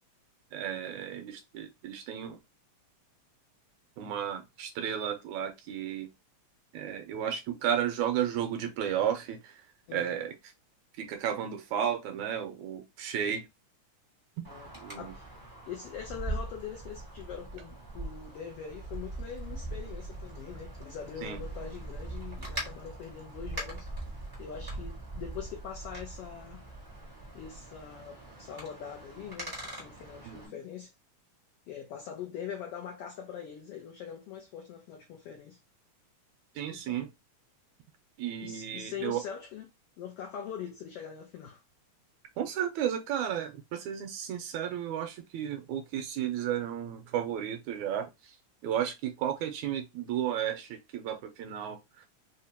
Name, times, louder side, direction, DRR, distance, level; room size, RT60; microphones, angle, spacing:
voice 1, 0.5-2.4 4.0-6.1 6.7-9.6 9.9-10.3 11.0-13.5 14.4-14.5 14.8-15.1 21.2-21.4 30.3-30.5 36.6-37.1 38.2-39.2 42.4-48.3 48.6-52.1, right 9 dB, 80° right, 1.9 m, -33 dB
Wind, 14.4-30.5, right 2 dB, 35° right, 0.3 m, -41 dB
voice 2, 14.5-15.3 15.7-23.9 24.4-26.6 27.3-30.9 31.7-35.6 36.7-37.0 38.4-39.7 40.0-41.6, left 8 dB, 85° left, 1.3 m, -42 dB
5.0 x 2.2 x 2.8 m
omnidirectional pair, 3.5 m